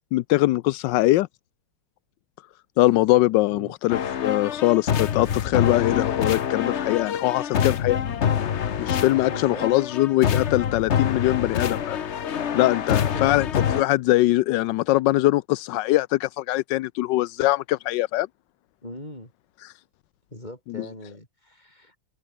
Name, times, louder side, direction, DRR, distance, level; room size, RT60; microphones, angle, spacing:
voice 1, 0.1-1.3 2.8-8.0 8.8-12.0 12.5-13.5 13.7-18.3 19.6-19.7 20.7-20.9, left 17 dB, 80° left, 1.0 m, -22 dB
sound 1, 3.9-13.8, left 8 dB, 55° left, 0.8 m, -26 dB
voice 2, 9.2-9.7 18.8-19.3 20.3-22.0, left 1 dB, 20° left, 6.8 m, -40 dB
omnidirectional pair, 2.4 m